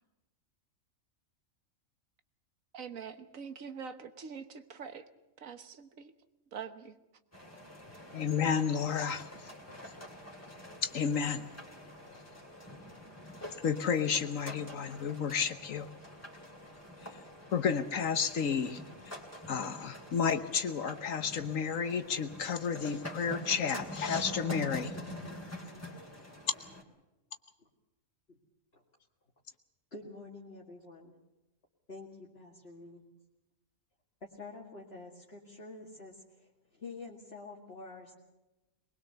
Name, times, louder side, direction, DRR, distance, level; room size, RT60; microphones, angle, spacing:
voice 1, 2.7-5.0 5.4-6.1 6.5-6.9, right 6 dB, 75° right, 1.6 m, -44 dB
sound 1, 7.3-26.8, left 1 dB, 10° left, 2.8 m, -46 dB
voice 2, 8.1-9.3 10.8-11.5 13.6-15.9 17.0-17.1 17.5-19.1 19.5-24.9, left 6 dB, 70° left, 1.4 m, -31 dB
voice 3, 29.9-31.2 31.9-33.1 34.2-38.1, left 3 dB, 45° left, 2.3 m, -48 dB
22.5 x 20.5 x 6.8 m
omnidirectional pair, 1.4 m